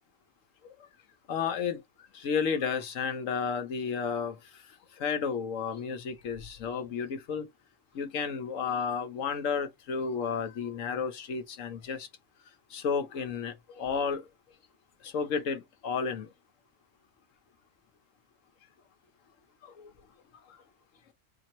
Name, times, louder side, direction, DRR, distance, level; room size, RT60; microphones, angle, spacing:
voice 1, 1.3-1.8 2.1-4.6 5.0-7.5 7.9-12.1 12.7-14.2 15.0-16.3 19.6-19.9 20.5-20.6, left 6 dB, 80° left, 1.3 m, -32 dB
4.3 x 2.8 x 3.0 m
omnidirectional pair, 1.3 m